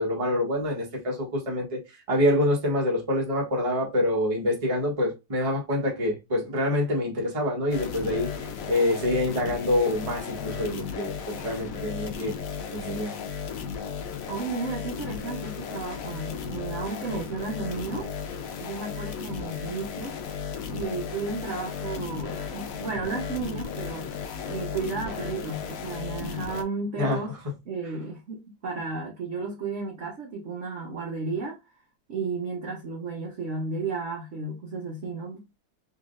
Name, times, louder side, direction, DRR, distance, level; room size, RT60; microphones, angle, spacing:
voice 1, 0.0-1.8 2.1-8.3 8.7-12.3 12.7-13.1 27.0-27.2, left 1 dB, 25° right, 0.9 m, -26 dB
sound 1, 7.7-26.6, left 6 dB, 70° left, 0.8 m, -35 dB
voice 2, 14.3-18.1 18.6-20.2 20.7-27.4 27.6-31.6 32.1-35.6, right 4 dB, 55° right, 0.9 m, -33 dB
3.7 x 3.1 x 2.5 m
omnidirectional pair, 2.1 m